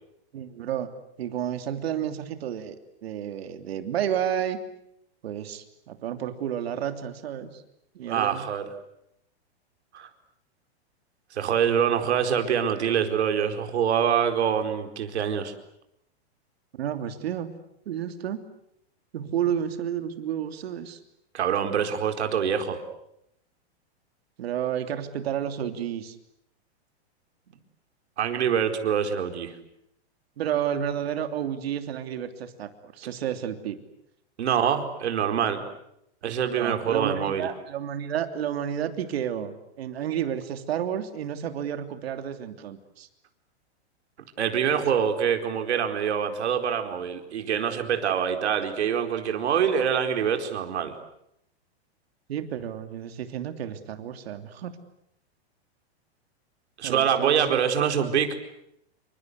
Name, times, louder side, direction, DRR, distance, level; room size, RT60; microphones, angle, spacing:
voice 1, 0.3-0.9 1.2-2.7 3.0-4.6 5.2-7.6 7.9-8.5 16.7-17.6 17.8-18.4 19.1-21.0 24.4-26.2 30.4-33.8 36.5-43.1 52.3-54.8 56.8-57.6, right 9 dB, 65° right, 8 dB, 3.1 m, -31 dB
voice 2, 8.1-8.7 9.9-10.1 11.3-15.5 21.3-22.8 28.2-29.6 34.4-35.6 36.2-37.5 44.4-50.9 56.8-58.4, right 8 dB, 80° right, 6 dB, 4.5 m, -25 dB
28.0 x 25.5 x 8.1 m, 0.78 s
supercardioid pair, 170°, 33 cm